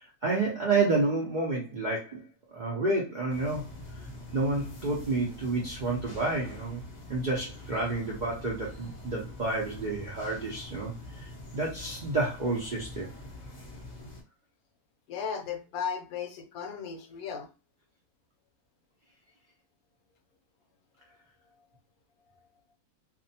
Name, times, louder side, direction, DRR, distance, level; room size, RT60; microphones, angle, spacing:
voice 1, 0.0-2.2 2.5-3.7 4.3-6.8 7.1-13.1, right 3 dB, 80° right, -3 dB, 0.4 m, -30 dB
sound 1, 3.3-14.2, left 1 dB, 35° left, 0.7 m, -45 dB
voice 2, 15.1-17.5, left 7 dB, 75° left, 5 dB, 1.0 m, -35 dB
2.5 x 2.1 x 2.7 m, 0.31 s
omnidirectional pair, 1.7 m